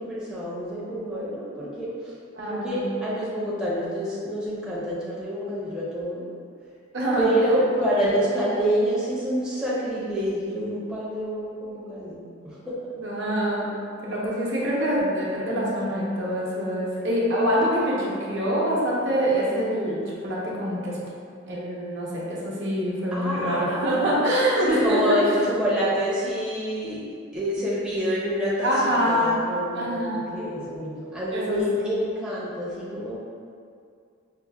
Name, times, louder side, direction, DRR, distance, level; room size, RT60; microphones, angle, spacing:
voice 1, 0.0-2.1 2.5-6.3 7.2-12.8 23.1-24.1 24.6-27.0 27.3-33.2, equal, 5° right, -9 dB, 0.5 m, -27 dB
voice 2, 2.4-2.9 6.9-7.3 8.0-8.2 13.0-13.7 14.0-21.0 21.5-25.2 28.6-29.3 29.7-30.2 31.3-31.8, equal, 60° right, -5 dB, 0.7 m, -25 dB
5.3 x 2.1 x 2.3 m, 2.3 s
head